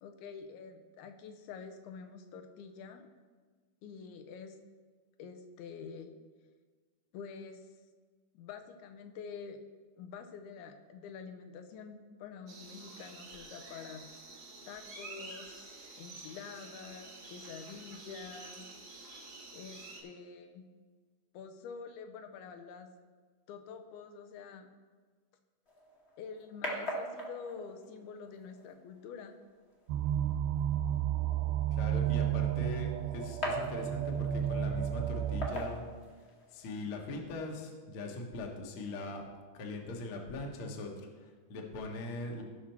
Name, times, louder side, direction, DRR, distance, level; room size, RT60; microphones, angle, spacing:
voice 1, 0.0-3.1 3.8-4.6 5.2-6.1 7.1-7.7 8.3-9.6 10.0-14.1 14.7-15.6 16.0-18.7 19.5-20.6 21.3-22.9 23.5-24.7 26.2-29.4, left 6 dB, 90° left, 5 dB, 2.8 m, -47 dB
sound 1, 12.5-20.0, right 3 dB, 40° right, 1.5 m, -49 dB
sound 2, 25.7-36.6, equal, 40° left, 0.9 m, -44 dB
sound 3, 29.9-35.5, right 10 dB, 80° right, 2.3 m, -32 dB
voice 2, 31.7-35.8 36.2-39.3 39.5-42.4, left 2 dB, 60° left, 1 dB, 1.4 m, -41 dB
16.0 x 5.9 x 4.4 m, 1.5 s
omnidirectional pair, 4.3 m